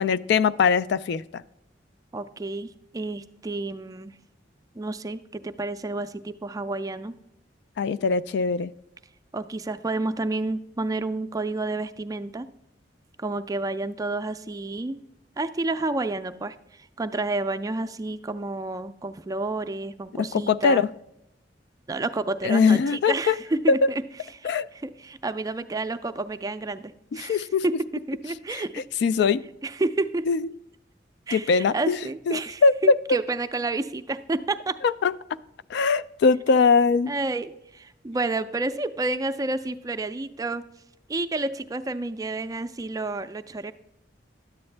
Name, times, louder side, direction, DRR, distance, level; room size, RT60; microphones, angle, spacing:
voice 1, 0.0-1.4 7.8-8.7 20.2-20.9 22.4-23.4 23.7-23.9 24.4-24.7 27.2-27.6 28.5-28.6 29.0-29.4 30.3-30.5 31.3-32.0 32.3-33.0 34.8-35.1 35.7-37.1, left 5 dB, 65° left, 17 dB, 0.3 m, -21 dB
voice 2, 2.1-4.2 4.8-7.1 9.3-12.5 13.2-15.0 15.4-20.8 21.9-23.8 24.4-24.5 24.8-27.7 28.1-28.7 29.6-30.3 31.3-34.8 37.1-40.6 41.1-43.7, right 2 dB, 20° right, 11 dB, 0.4 m, -30 dB
10.5 x 7.9 x 3.3 m, 0.81 s
head